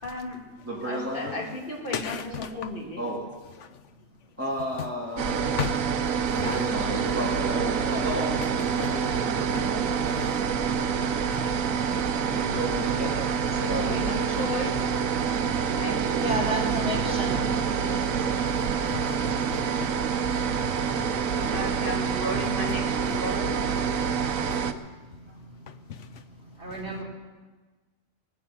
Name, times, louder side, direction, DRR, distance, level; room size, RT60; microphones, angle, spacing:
voice 1, 0.0-3.0 3.6-3.7 6.4-7.1 12.8-14.8 15.8-16.0 21.5-23.9, left 1 dB, 40° left, 2.5 m, -35 dB
voice 2, 0.6-1.4 2.2-3.2 4.4-5.7 6.3-8.4 8.7-10.0 12.3-13.2 13.5-14.5, equal, 10° right, 2.7 m, -33 dB
voice 3, 1.9-2.5 5.6-5.7 10.1-10.4 11.3-11.4 18.6-19.2 19.5-19.9, left 9 dB, 65° left, 1.0 m, -34 dB
sound 1, 5.2-24.7, right 6 dB, 85° right, 1.3 m, -27 dB
voice 4, 16.2-17.4 26.6-27.0, right 1 dB, 45° right, 3.9 m, -31 dB
18.5 x 10.0 x 7.4 m
omnidirectional pair, 1.4 m